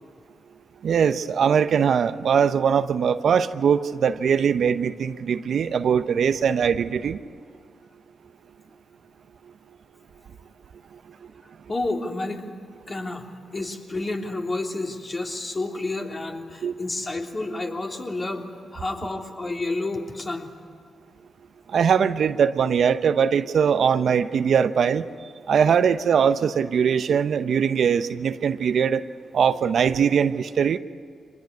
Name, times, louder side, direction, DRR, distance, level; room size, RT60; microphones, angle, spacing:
voice 1, 0.8-7.2 16.6-16.8 21.7-25.1 25.5-29.0 29.3-30.8, right 7 dB, 70° right, 11 dB, 0.8 m, -21 dB
voice 2, 11.7-12.4 12.9-13.3 13.5-18.4 18.7-20.5, left 2 dB, 35° left, 1 dB, 3.3 m, -30 dB
24.5 x 20.0 x 9.5 m, 2.1 s
supercardioid pair, 50°, 0 cm